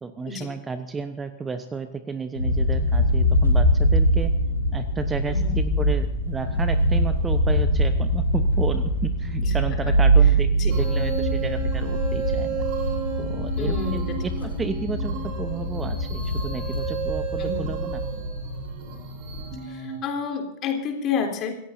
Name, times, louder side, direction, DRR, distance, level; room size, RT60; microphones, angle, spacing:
voice 1, 0.0-4.3 4.7-12.6 13.2-18.0, right 4 dB, 15° right, 10 dB, 1.0 m, -32 dB
sound 1, 2.4-19.6, right 1 dB, 80° left, 3.2 m, -23 dB
voice 2, 5.3-5.6 9.4-9.5 9.9-10.0 10.6-10.8 13.6-14.2 17.4-17.7 19.6-21.6, left 5 dB, 35° left, 3 dB, 3.4 m, -30 dB
Strange animals, 10.7-20.0, right 6 dB, 40° right, 3.9 m, -33 dB
26.0 x 15.5 x 2.7 m, 0.86 s
figure-of-eight pair, 90°, 0 cm